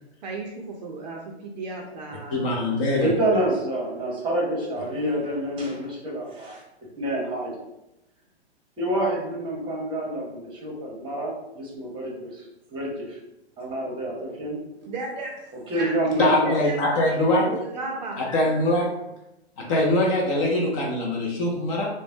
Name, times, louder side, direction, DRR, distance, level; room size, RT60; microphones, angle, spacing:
voice 1, 0.2-2.5 2.8-3.5 14.8-17.2 17.5-18.2, right 3 dB, 40° right, 0 dB, 0.5 m, -35 dB
voice 2, 2.3-3.1 16.2-17.4 18.2-18.9 19.6-21.9, left 1 dB, 30° left, -2 dB, 0.5 m, -23 dB
voice 3, 3.0-6.6 7.0-7.5 8.8-12.4 12.7-13.2 13.6-14.6 15.7-16.6 17.1-17.5, right 1 dB, 15° right, -4 dB, 0.8 m, -27 dB
3.0 x 2.1 x 2.6 m, 0.89 s
hypercardioid pair, 125°, 33 cm